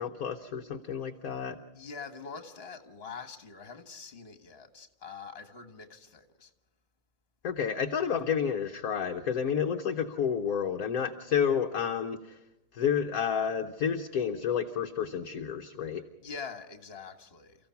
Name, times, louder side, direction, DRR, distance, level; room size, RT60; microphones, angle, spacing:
voice 1, 0.0-1.6 7.4-12.4 12.7-16.0, left 7 dB, 55° left, 1.2 m, -30 dB
voice 2, 1.7-6.5 16.2-17.7, left 5 dB, 35° left, 1.8 m, -44 dB
30.0 x 15.0 x 5.8 m
omnidirectional pair, 2.0 m